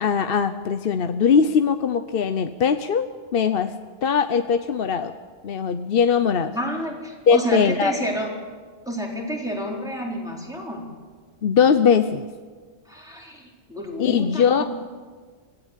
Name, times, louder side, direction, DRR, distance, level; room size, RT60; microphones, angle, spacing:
voice 1, 0.0-3.7 4.0-5.1 5.4-6.5 7.3-7.9 11.4-12.2 14.0-14.6, left 6 dB, 60° left, 9 dB, 0.9 m, -20 dB
voice 2, 6.5-8.3 8.8-10.9 12.9-14.6, equal, 5° right, -3 dB, 4.5 m, -29 dB
24.5 x 16.0 x 8.3 m, 1.5 s
omnidirectional pair, 1.2 m